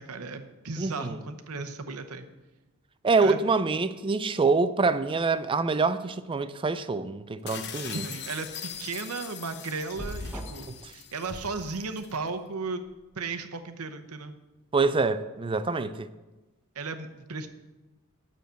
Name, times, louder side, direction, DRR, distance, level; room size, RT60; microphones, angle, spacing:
voice 1, 0.0-2.3 3.2-3.4 7.9-12.8 13.2-14.4 16.7-17.5, right 4 dB, 70° right, 0.9 m, -35 dB
voice 2, 0.8-1.2 3.0-8.0 10.7-10.9 14.7-16.1, right 4 dB, 25° right, 0.4 m, -26 dB
sound 1, 7.5-12.2, left 9 dB, 50° left, 0.7 m, -41 dB
sound 2, 10.0-10.7 11.2-12.2, equal, 5° right, 1.0 m, -39 dB
9.2 x 6.5 x 6.9 m
head